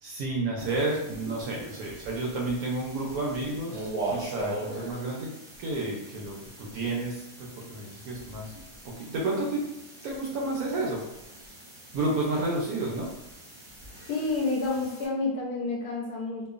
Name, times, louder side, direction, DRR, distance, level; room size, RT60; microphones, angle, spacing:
voice 1, 0.0-5.3 5.6-8.5 8.8-9.7 10.0-11.0 11.3-11.6 11.9-13.1, right 2 dB, 70° right, -3 dB, 0.9 m, -31 dB
sound 1, 0.6-15.1, right 2 dB, 35° right, 0.6 m, -41 dB
voice 2, 14.1-16.5, left 3 dB, 70° left, -1 dB, 1.0 m, -29 dB
2.9 x 2.1 x 2.3 m, 0.96 s
omnidirectional pair, 1.8 m